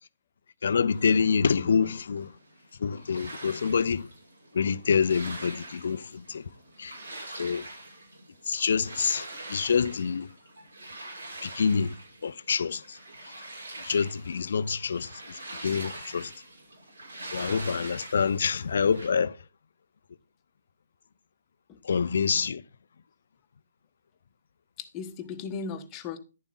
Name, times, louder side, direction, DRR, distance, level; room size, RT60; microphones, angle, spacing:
voice 1, 0.6-2.3 2.8-4.1 4.5-6.4 6.8-6.9 7.4-7.6 8.5-10.3 11.4-11.9 12.2-12.8 13.8-15.1 15.6-16.3 17.3-19.3 21.9-22.6, left 6 dB, 65° left, 0.5 m, -26 dB
sound 1, 0.9-19.1, right 2 dB, 80° right, 6.2 m, -44 dB
voice 2, 24.8-26.2, left 5 dB, 25° left, 1.2 m, -37 dB
10.5 x 7.1 x 3.9 m
figure-of-eight pair, 140°, 0 cm